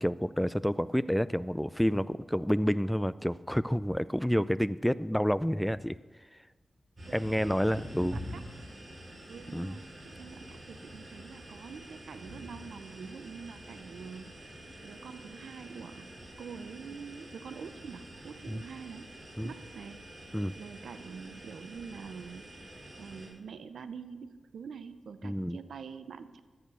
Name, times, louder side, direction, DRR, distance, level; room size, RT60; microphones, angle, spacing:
voice 1, 0.0-6.0 7.1-8.1 9.5-9.8 18.5-18.6 19.4-19.5 20.3-20.5 25.2-25.6, equal, 5° left, 17 dB, 0.4 m, -29 dB
sound 1, 7.0-23.3, equal, 40° right, 3.9 m, -47 dB
voice 2, 7.1-8.4 9.3-19.1 19.4-20.0 20.6-22.5 23.0-26.4, right 6 dB, 90° right, 12 dB, 0.6 m, -46 dB
12.5 x 8.8 x 6.2 m, 1.3 s
cardioid pair, 60°, 0 cm